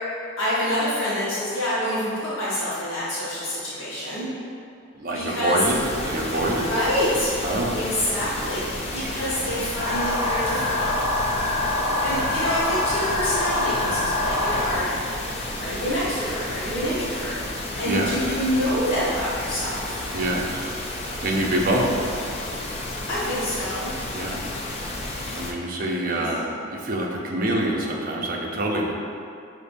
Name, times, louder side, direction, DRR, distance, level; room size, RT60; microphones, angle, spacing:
voice 1, 0.4-4.3 5.1-5.6 6.5-7.3 7.7-10.9 12.0-14.9 15.6-17.4 17.8-20.0 23.1-23.9 25.9-26.6, equal, 70° left, -11 dB, 1.1 m, -27 dB
voice 2, 4.9-6.7 7.4-7.8 8.9-9.4 11.6-11.9 17.9-18.2 20.1-20.7 21.2-22.2 24.1-24.5 25.4-28.9, right 1 dB, 45° right, -1 dB, 0.5 m, -26 dB
sound 1, 5.6-25.5, left 1 dB, 30° left, 0.3 m, -32 dB
sound 2, 9.8-14.8, left 1 dB, 55° left, 0.8 m, -25 dB
6.4 x 2.6 x 2.6 m, 2.4 s
head